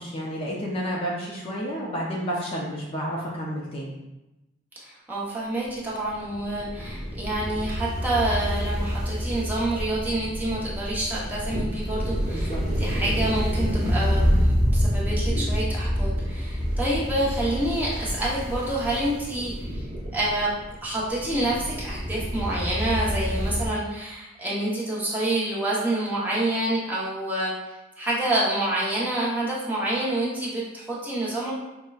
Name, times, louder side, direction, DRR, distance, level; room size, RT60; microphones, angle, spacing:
voice 1, 0.0-3.9 12.3-12.6, equal, 30° left, -4 dB, 0.5 m, -30 dB
voice 2, 4.8-14.2 14.7-19.8 20.1-20.5 20.8-27.5 28.0-31.5, right 1 dB, 10° right, -7 dB, 0.8 m, -27 dB
sound 1, 6.1-23.7, equal, 40° right, 0.9 m, -27 dB
5.1 x 2.1 x 2.3 m, 0.98 s
head